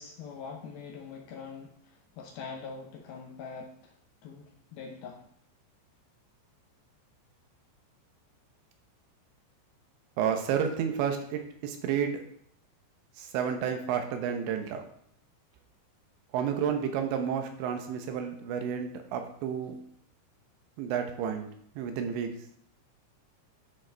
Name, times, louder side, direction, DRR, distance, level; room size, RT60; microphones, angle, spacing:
voice 1, 0.0-3.9 4.2-5.2, left 5 dB, 75° left, 1 dB, 2.4 m, -43 dB
voice 2, 10.2-12.2 13.2-14.8 16.3-19.8 20.8-21.5 21.8-22.3, right 8 dB, 85° right, 5 dB, 3.3 m, -31 dB
11.5 x 6.5 x 3.4 m, 0.67 s
omnidirectional pair, 5.2 m